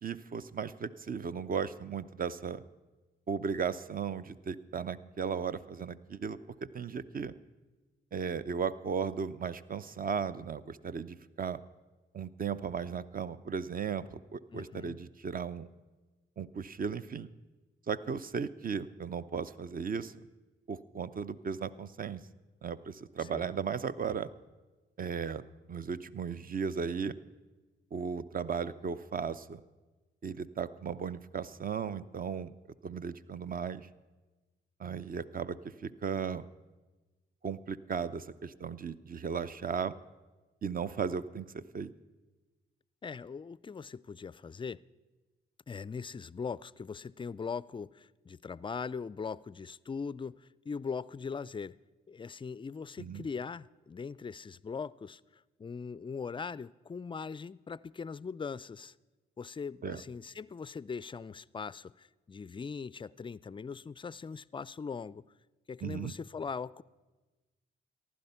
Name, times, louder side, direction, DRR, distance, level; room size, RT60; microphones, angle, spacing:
voice 1, 0.0-2.6 3.3-7.3 8.1-11.6 12.1-15.7 16.4-17.3 17.9-20.1 20.7-22.2 22.6-24.3 25.0-27.1 27.9-29.6 30.2-32.5 32.8-33.9 34.8-36.5 37.4-39.9 40.6-41.9 53.0-53.3 59.8-60.0 65.8-66.1, right 6 dB, 40° right, 0.6 m, -36 dB
voice 2, 14.5-15.0 23.2-23.5 43.0-44.8 45.7-51.8 52.1-58.9 59.4-65.2 65.7-66.8, left 5 dB, 25° left, 0.3 m, -40 dB
15.0 x 11.5 x 5.6 m
supercardioid pair, 55°, 21 cm